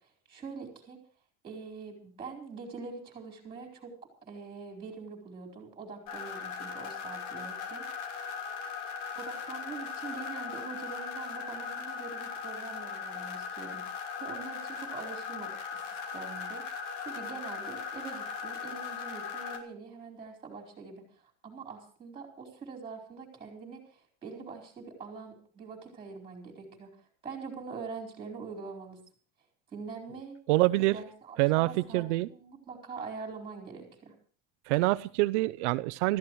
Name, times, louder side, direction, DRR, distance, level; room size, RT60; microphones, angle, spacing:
voice 1, 0.3-1.0 1.4-3.9 4.2-7.8 9.1-13.8 14.2-21.0 21.4-26.9 27.2-29.0 29.7-30.4 30.7-34.1, right 5 dB, 15° right, 2 dB, 4.3 m, -44 dB
sound 1, 6.1-19.6, left 6 dB, 85° left, 2.9 m, -39 dB
voice 2, 30.5-31.0 31.4-32.3 34.7-36.2, right 20 dB, 75° right, 15 dB, 0.6 m, -26 dB
25.5 x 14.0 x 3.1 m, 0.42 s
cardioid pair, 165°, 35 cm